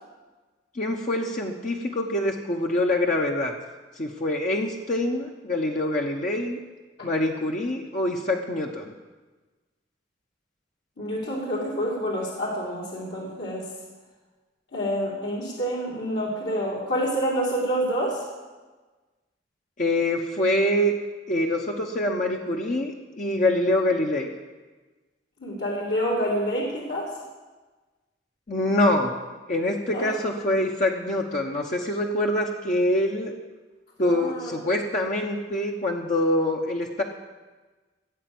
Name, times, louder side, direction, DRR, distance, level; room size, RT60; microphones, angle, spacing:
voice 1, 0.7-3.5 4.0-6.6 7.0-8.9 19.8-20.9 21.3-24.3 28.5-29.1 29.5-33.3 34.0-37.0, left 1 dB, 45° left, 1 dB, 1.0 m, -25 dB
voice 2, 11.0-13.7 14.7-18.3 25.4-27.1 29.9-30.1 34.0-34.5, equal, 65° left, -5 dB, 2.6 m, -28 dB
16.0 x 8.2 x 7.8 m, 1.3 s
head